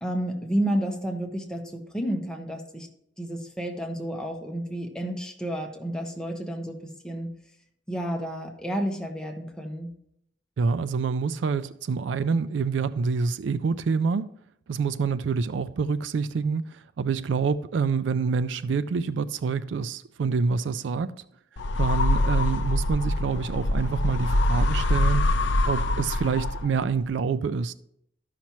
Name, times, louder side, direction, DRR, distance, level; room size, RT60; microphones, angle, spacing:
voice 1, 0.0-2.9 3.2-6.7 7.0-7.3 7.9-9.9, right 1 dB, 5° left, 1.0 m, -30 dB
voice 2, 10.6-14.3 14.7-21.1 21.8-25.4 25.7-27.7, right 5 dB, 75° right, 0.4 m, -27 dB
sound 1, 21.6-26.9, left 1 dB, 70° left, 0.5 m, -24 dB
13.0 x 5.8 x 3.0 m
head